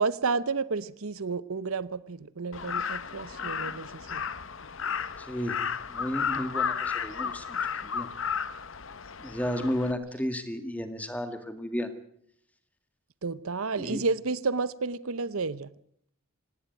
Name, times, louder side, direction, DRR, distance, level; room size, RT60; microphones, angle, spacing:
voice 1, 0.0-4.2 13.2-15.7, right 4 dB, 75° right, 0.8 m, -31 dB
Crow, 2.5-9.9, left 6 dB, 60° left, 0.9 m, -33 dB
voice 2, 5.2-5.6 5.9-8.1 9.2-11.9 13.8-14.0, equal, 5° left, 1.9 m, -33 dB
18.5 x 17.5 x 9.2 m
head